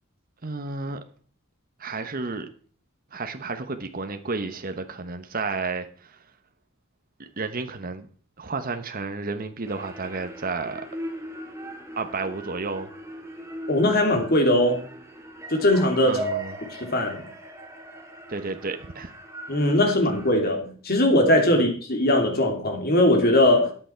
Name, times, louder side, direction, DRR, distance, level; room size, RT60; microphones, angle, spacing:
voice 1, 0.4-1.0 1.8-2.5 3.1-6.2 7.2-8.1 8.4-10.9 12.0-12.9 16.0-16.6 18.3-19.1 21.5-21.7, right 3 dB, 40° right, 1.1 m, -32 dB
sound 1, 9.6-20.3, right 1 dB, 15° right, 2.1 m, -39 dB
voice 2, 13.7-14.8 15.5-16.2 16.8-17.2 19.5-23.7, left 1 dB, 45° left, 3.1 m, -20 dB
13.5 x 9.0 x 4.5 m
head